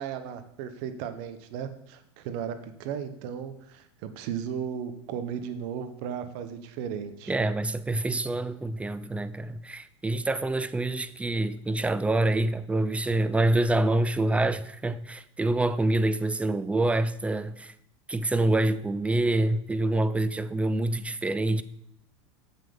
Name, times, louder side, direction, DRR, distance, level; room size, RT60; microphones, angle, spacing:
voice 1, 0.0-7.3, right 8 dB, 60° right, 1.1 m, -35 dB
voice 2, 7.3-17.7 18.1-21.6, right 2 dB, 10° right, 0.4 m, -26 dB
7.3 x 5.8 x 5.3 m
hypercardioid pair, 95°, 16 cm